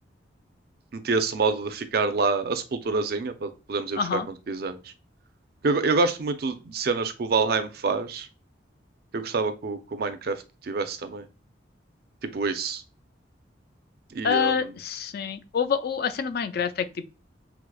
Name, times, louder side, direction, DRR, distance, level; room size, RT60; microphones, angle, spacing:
voice 1, 0.9-4.2 4.5-4.9 5.6-8.3 9.1-11.3 12.2-12.8 14.1-14.7, right 4 dB, 55° right, 0.4 m, -27 dB
voice 2, 4.0-4.3 14.2-17.0, left 6 dB, 55° left, 0.4 m, -27 dB
4.7 x 2.0 x 2.2 m
head